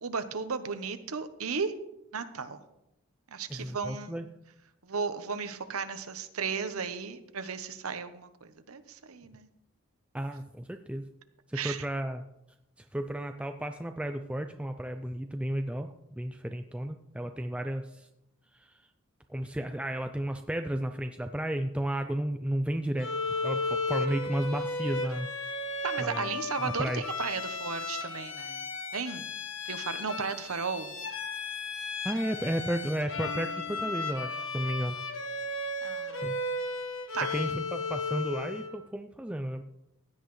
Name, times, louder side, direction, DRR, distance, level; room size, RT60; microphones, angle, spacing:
voice 1, 0.0-1.7 2.1-2.6 3.3-4.3 4.8-9.5 11.5-11.8 25.8-28.6 28.9-29.2 29.7-30.9 35.8-36.4 37.1-37.3, right 5 dB, 80° right, 10 dB, 0.9 m, -35 dB
voice 2, 3.5-4.3 10.1-11.0 11.5-12.2 12.9-18.1 18.6-18.7 19.3-25.3 26.0-26.3 26.6-27.0 32.0-35.0 36.2-36.3 37.3-39.6, right 1 dB, 5° right, 6 dB, 0.3 m, -33 dB
Bowed string instrument, 23.0-38.8, left 3 dB, 60° left, 1.4 m, -35 dB
16.0 x 10.5 x 3.2 m, 0.86 s
head